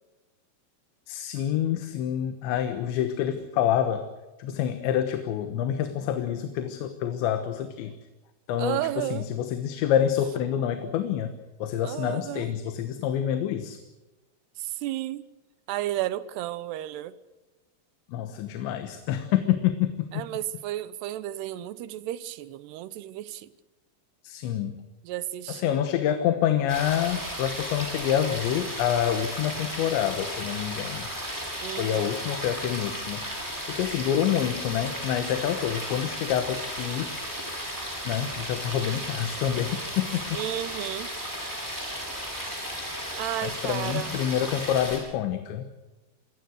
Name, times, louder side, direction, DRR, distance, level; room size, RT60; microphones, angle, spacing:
voice 1, 1.1-4.1 4.4-8.0 8.5-11.3 11.6-13.8 18.1-20.3 24.2-24.8 25.5-31.1 31.8-33.2 33.7-37.1 38.1-40.4 43.4-45.7, left 10 dB, 90° left, 8 dB, 3.6 m, -27 dB
voice 2, 8.6-9.3 11.8-12.5 14.6-15.2 15.7-17.1 20.1-23.5 25.0-25.7 31.6-32.1 40.3-41.1 43.2-44.2, right 14 dB, 75° right, 15 dB, 2.9 m, -33 dB
sound 1, 26.7-45.0, equal, 5° right, 5.6 m, -35 dB
27.5 x 21.5 x 6.4 m, 1.1 s
omnidirectional pair, 5.0 m